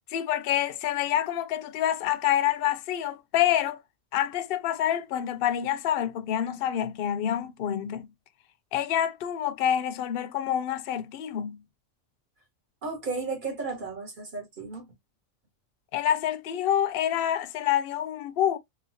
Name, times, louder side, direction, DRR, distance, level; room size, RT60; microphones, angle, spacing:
voice 1, 0.1-3.8 4.1-8.1 8.7-11.6 15.9-18.6, left 10 dB, 65° left, 0.6 m, -27 dB
voice 2, 12.8-14.9, right 4 dB, 40° right, 1.7 m, -34 dB
3.9 x 2.8 x 2.7 m
omnidirectional pair, 1.4 m